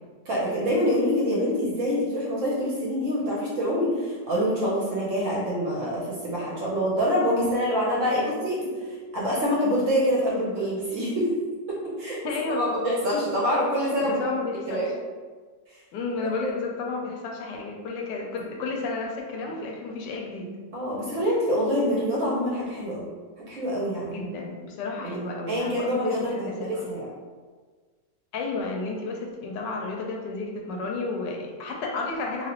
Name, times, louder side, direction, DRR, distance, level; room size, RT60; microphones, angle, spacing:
voice 1, 0.3-8.6 9.1-11.3 11.7-12.2 12.5-14.3 14.7-14.9 16.2-16.5 20.7-23.1 23.5-24.1 25.0-25.2 25.5-27.1, equal, 60° right, -5 dB, 0.8 m, -26 dB
voice 2, 12.2-12.7 14.0-14.8 15.9-20.5 24.1-26.9 28.3-32.5, left 3 dB, 90° left, 1 dB, 1.2 m, -32 dB
2.9 x 2.7 x 2.8 m, 1.5 s
omnidirectional pair, 1.8 m